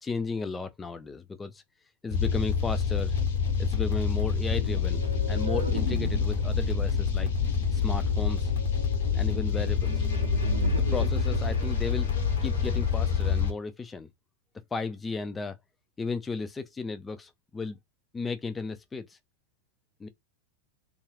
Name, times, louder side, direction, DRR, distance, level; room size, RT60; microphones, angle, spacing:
voice 1, 0.0-1.6 2.0-3.2 3.6-7.3 7.7-8.5 9.1-10.1 10.9-12.1 12.4-14.1 14.7-15.6 16.0-17.8 18.1-19.2 20.0-20.1, left 4 dB, 15° left, 0.3 m, -34 dB
sound 1, 2.1-13.5, left 6 dB, 60° left, 1.0 m, -27 dB
sound 2, 4.5-13.3, right 4 dB, 80° right, 0.6 m, -36 dB
2.4 x 2.2 x 3.3 m
figure-of-eight pair, 90°, 0 cm